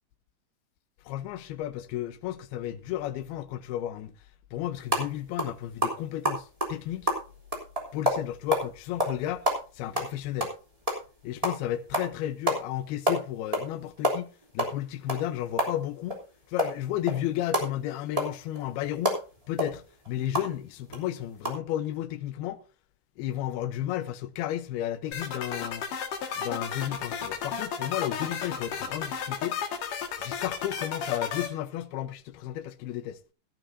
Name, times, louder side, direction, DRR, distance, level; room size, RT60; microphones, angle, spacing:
voice 1, 1.1-4.1 4.5-7.1 7.9-9.5 9.7-10.5 11.2-16.2 16.5-19.2 19.5-22.6 23.2-25.8 26.3-29.6 30.1-33.2, left 12 dB, 80° left, 2.8 m, -33 dB
sound 1, 4.8-5.1 5.4-5.5 5.8-8.6 9.0-9.2 9.4-11.1 11.4-11.6 11.9-12.1 12.5-12.6 12.9-13.7 14.0-16.2 16.6-20.5 20.9-21.0 21.4-21.5, equal, 10° right, 2.7 m, -28 dB
sound 2, 25.1-31.5, left 7 dB, 60° left, 3.1 m, -33 dB
17.0 x 12.5 x 2.7 m
omnidirectional pair, 4.5 m